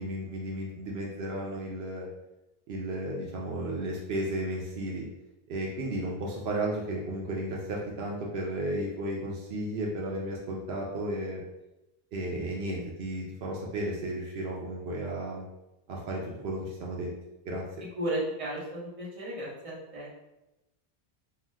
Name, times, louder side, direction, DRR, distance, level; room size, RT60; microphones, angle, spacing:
voice 1, 0.0-2.1 2.7-5.0 5.5-11.4 12.1-15.4 15.9-17.1 17.5-17.6, right 1 dB, 80° right, -3 dB, 0.8 m, -33 dB
voice 2, 17.9-20.2, right 1 dB, 35° right, -7 dB, 1.0 m, -34 dB
2.8 x 2.0 x 3.3 m, 0.95 s
omnidirectional pair, 1.0 m